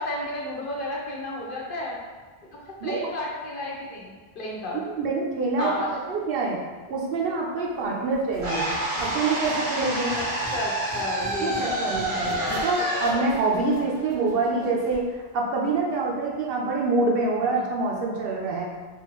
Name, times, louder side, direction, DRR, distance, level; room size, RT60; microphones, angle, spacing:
voice 1, 0.0-2.0 2.5-4.8 5.6-5.9 7.8-8.1 10.1-10.3 10.5-12.5 17.5-17.7, left 1 dB, 60° left, -3 dB, 0.8 m, -33 dB
voice 2, 4.8-6.6 6.9-8.6 9.0-10.1 11.4-12.3 12.6-18.6, right 3 dB, 70° right, -2 dB, 0.8 m, -26 dB
Squeak, 8.1-10.6 10.9-15.0, left 1 dB, 80° left, 1.0 m, -41 dB
sound 1, 8.4-14.5, right 1 dB, 90° right, 1.3 m, -28 dB
3.5 x 2.5 x 3.0 m, 1.3 s
omnidirectional pair, 1.1 m